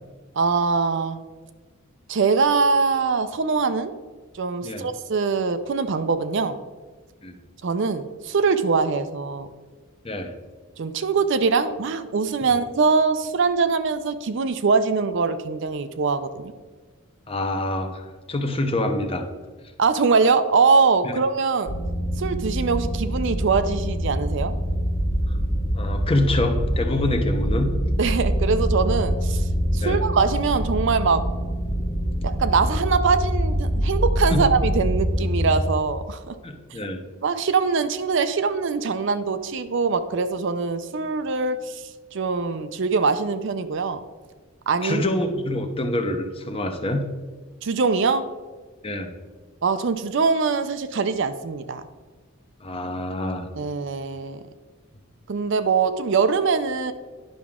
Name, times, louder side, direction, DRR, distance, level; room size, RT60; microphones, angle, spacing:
voice 1, 0.4-1.2 2.1-3.9 4.3-6.6 7.6-9.5 10.8-16.5 19.8-21.7 22.2-24.5 28.0-31.2 32.2-36.4 37.2-44.0 44.7-45.0 47.6-48.2 49.6-51.8 53.6-54.4 55.3-56.9, right 4 dB, 55° right, 10 dB, 0.5 m, -23 dB
voice 2, 17.3-19.3 21.0-21.1 25.3-25.4 25.7-27.7 29.8-30.0 34.3-34.5 36.4-37.0 44.8-47.0 48.8-49.1 52.6-53.5, left 1 dB, 25° left, 6 dB, 0.7 m, -26 dB
sound 1, 21.7-35.6, equal, 85° left, 1.4 m, -25 dB
10.5 x 5.9 x 3.6 m, 1.4 s
head